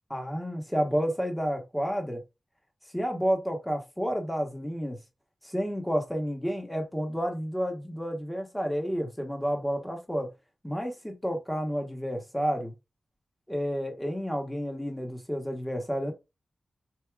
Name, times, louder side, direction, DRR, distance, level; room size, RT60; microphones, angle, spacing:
voice 1, 0.1-2.2 2.9-5.0 5.4-10.3 10.6-12.7 13.5-16.1, equal, 5° left, 1.0 m, -30 dB
4.6 x 2.7 x 2.3 m
wide cardioid pair, 110°, 0 cm